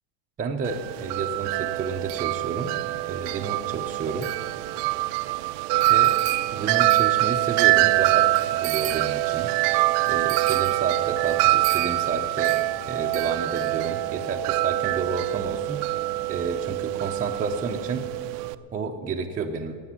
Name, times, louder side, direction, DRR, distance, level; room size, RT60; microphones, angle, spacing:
voice 1, 0.4-4.3 5.9-6.2 6.5-9.5 10.1-15.9 16.3-18.1 18.7-19.8, right 4 dB, 20° right, 1 dB, 0.6 m, -31 dB
Wind chime, 0.6-18.5, right 18 dB, 80° right, 0.7 m, -24 dB
13.5 x 9.1 x 9.6 m, 2.1 s
cardioid pair, 155°, 45 cm